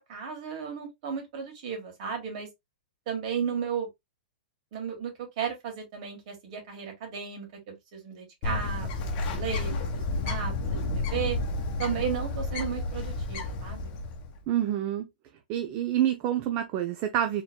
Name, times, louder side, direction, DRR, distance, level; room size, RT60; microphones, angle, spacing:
voice 1, 0.1-2.5 3.1-3.9 4.7-8.9 9.1-11.4 11.8-13.9, right 7 dB, 50° right, 2.1 m, -34 dB
Bird, 8.4-14.4, left 2 dB, 35° left, 1.2 m, -31 dB
voice 2, 14.5-15.1 15.5-17.4, right 11 dB, 35° right, 0.5 m, -27 dB
4.4 x 3.7 x 2.2 m
hypercardioid pair, 145°, 5 cm